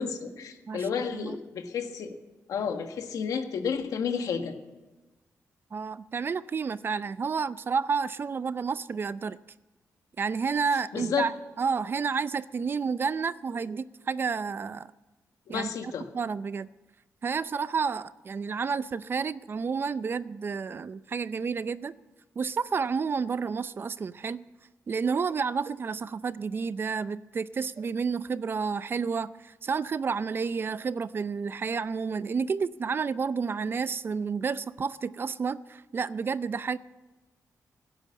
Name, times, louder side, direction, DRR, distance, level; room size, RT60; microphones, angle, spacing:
voice 1, 0.0-2.1 2.5-4.6 10.9-11.3 15.5-16.0, left 6 dB, 85° left, 6 dB, 1.6 m, -31 dB
voice 2, 0.7-1.4 5.7-9.4 10.2-14.9 15.5-16.7 17.2-21.9 22.4-24.4 24.9-36.8, right 5 dB, 40° right, 16 dB, 0.5 m, -30 dB
16.5 x 9.2 x 8.5 m, 1.2 s
cardioid pair, 120°, 6 cm